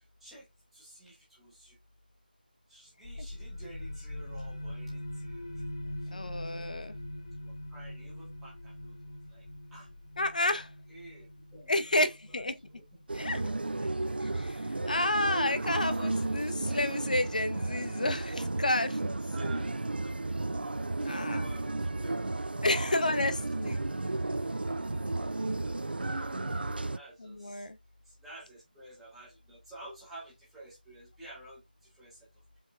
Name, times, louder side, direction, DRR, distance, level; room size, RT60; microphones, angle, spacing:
voice 1, 0.7-1.7 2.7-5.4 6.1-6.3 7.4-8.9 9.3-9.4 9.7-9.9 10.9-11.3 11.5-11.8 12.3-13.4 13.8-14.1 19.3-20.6 21.0-22.4 23.0-23.6 25.6-27.7 28.2-31.6 32.0-32.2, right 1 dB, ahead, 0.7 m, -51 dB
sound 1, 3.0-14.4, left 1 dB, 30° left, 1.0 m, -43 dB
voice 2, 6.1-6.9 10.2-10.7 11.7-12.6 13.1-13.5 14.9-19.0 21.1-21.5 22.6-23.8 27.2-27.8, left 2 dB, 55° left, 0.6 m, -30 dB
sound 2, 13.1-27.0, right 2 dB, 80° right, 0.4 m, -33 dB
4.7 x 3.6 x 2.3 m
figure-of-eight pair, 165°, 5 cm